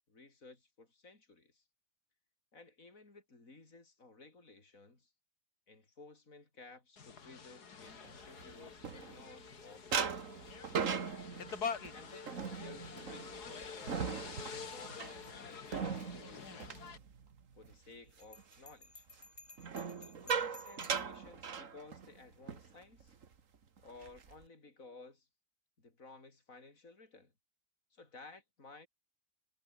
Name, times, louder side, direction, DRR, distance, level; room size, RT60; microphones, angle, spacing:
voice 1, 0.1-1.6 2.5-5.1 5.7-10.5 11.9-16.8 17.5-19.1 20.0-23.1 23.8-25.3 25.8-27.3 27.9-28.9, left 3 dB, 55° left, 5.1 m, -56 dB
sound 1, 7.0-17.0, left 6 dB, 75° left, 2.6 m, -46 dB
sound 2, 8.0-9.5 9.9-17.7 18.1-18.4 19.6-22.2 22.5-22.7 23.0-23.3 23.8-24.4, right 6 dB, 55° right, 1.9 m, -39 dB
Bell, 18.2-21.2, left 2 dB, 20° left, 1.8 m, -56 dB
omnidirectional pair, 1.7 m